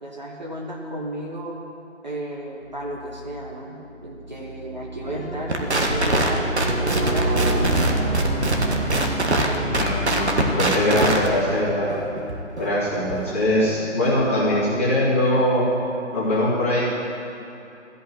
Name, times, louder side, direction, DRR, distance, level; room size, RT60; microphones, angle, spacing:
voice 1, 0.0-1.6 2.0-8.1, right 1 dB, 35° right, -1 dB, 1.3 m, -33 dB
sound 1, 3.1-3.5 4.1-10.9, right 2 dB, 80° right, 2.1 m, -29 dB
sound 2, 5.0-10.6, left 2 dB, 50° left, 1.9 m, -34 dB
sound 3, 5.5-14.2, right 2 dB, 60° right, 1.6 m, -24 dB
voice 2, 9.7-11.9 12.6-15.6 16.1-16.9, left 1 dB, 10° left, -12 dB, 1.5 m, -22 dB
14.0 x 5.7 x 9.4 m, 2.8 s
figure-of-eight pair, 175°, 37 cm